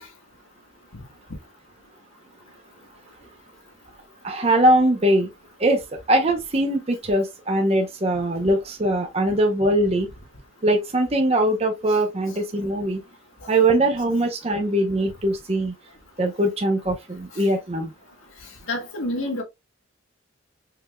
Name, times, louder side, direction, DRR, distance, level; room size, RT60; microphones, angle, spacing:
voice 1, 4.2-5.3 5.6-5.8 6.1-10.1 10.6-13.0 13.5-15.7 16.2-17.9, right 1 dB, 30° right, 0.7 m, -21 dB
voice 2, 18.7-19.4, left 1 dB, 85° left, 1.6 m, -27 dB
4.8 x 3.5 x 2.2 m
head